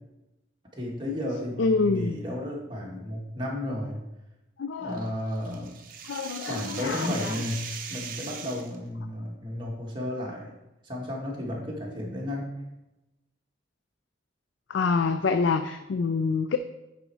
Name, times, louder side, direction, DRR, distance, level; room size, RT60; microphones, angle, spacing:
voice 1, 0.7-4.0 4.8-5.7 6.5-10.5 10.8-12.5, left 1 dB, 25° right, -3 dB, 1.7 m, -33 dB
voice 2, 1.6-2.2 4.6-5.0 6.1-7.3 14.7-16.6, left 4 dB, 75° left, 9 dB, 0.4 m, -26 dB
sound 1, 4.9-8.8, right 7 dB, 45° right, 0.7 m, -39 dB
9.2 x 4.3 x 4.7 m, 0.98 s
head